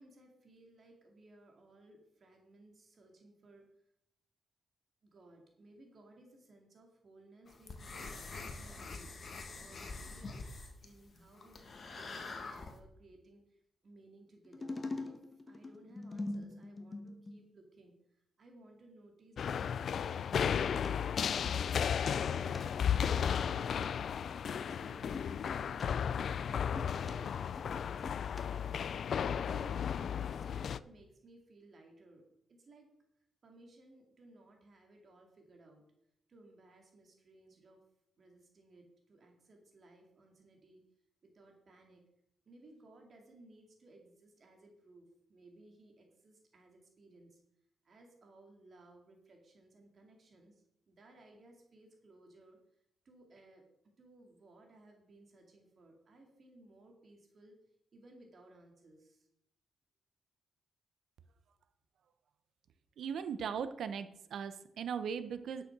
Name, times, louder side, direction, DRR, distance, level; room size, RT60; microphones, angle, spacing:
voice 1, 0.0-3.7 5.0-9.2 9.6-21.8 22.2-23.6 24.4-28.2 29.2-29.8 30.2-32.2 32.5-32.9 33.4-35.8 36.3-37.8 38.2-40.8 41.2-42.0 42.5-47.4 47.8-52.6 53.0-53.6 54.0-57.6 57.9-59.3, right 2 dB, 40° right, 2 dB, 2.3 m, -60 dB
sound 1, 7.5-12.8, left 3 dB, 40° left, 1.5 m, -46 dB
sound 2, 14.4-17.5 20.6-20.9 22.5-22.6 23.0-23.2 23.8-23.9 24.5-24.6 25.1-25.8 26.3-27.1 27.6-28.4 28.7-28.8, left 2 dB, 25° left, 1.3 m, -44 dB
sound 3, 19.4-30.8, left 8 dB, 55° left, 0.4 m, -34 dB
voice 2, 63.0-65.6, right 7 dB, 70° right, 11 dB, 0.9 m, -38 dB
10.5 x 6.9 x 6.1 m, 0.76 s
wide cardioid pair, 150°, 0 cm